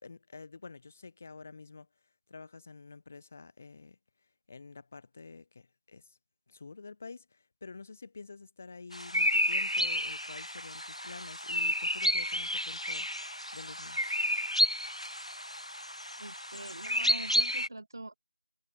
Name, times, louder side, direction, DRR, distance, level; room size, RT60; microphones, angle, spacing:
voice 1, 0.0-1.9 2.3-4.0 4.5-6.2 6.5-13.1 13.5-14.0, left 4 dB, 20° left, 3.3 m, -48 dB
sound 1, 8.9-17.7, equal, 85° left, 1.9 m, -31 dB
voice 2, 16.2-18.2, right 2 dB, 35° right, 1.9 m, -44 dB
figure-of-eight pair, 170°, 3 cm